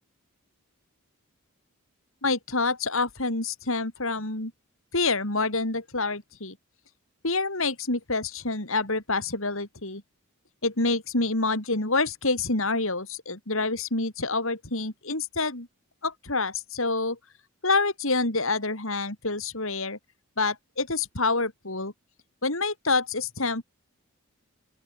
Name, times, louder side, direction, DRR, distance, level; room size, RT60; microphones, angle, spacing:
voice 1, 2.2-4.5 4.9-6.6 7.2-10.0 10.6-15.7 16.0-17.2 17.6-20.0 20.4-21.9 22.4-23.6, left 3 dB, 65° left, 4.3 m, -27 dB
open air
head